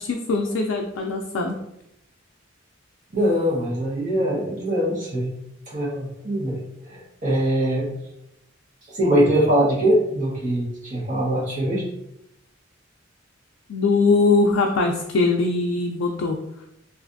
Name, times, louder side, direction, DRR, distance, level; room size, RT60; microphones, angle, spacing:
voice 1, 0.0-1.6 13.7-16.4, left 3 dB, 80° left, 1 dB, 0.4 m, -21 dB
voice 2, 3.1-5.3 5.7-6.6 6.9-7.9 8.9-11.9, right 1 dB, 40° right, -6 dB, 1.1 m, -22 dB
3.1 x 2.5 x 2.6 m, 0.83 s
head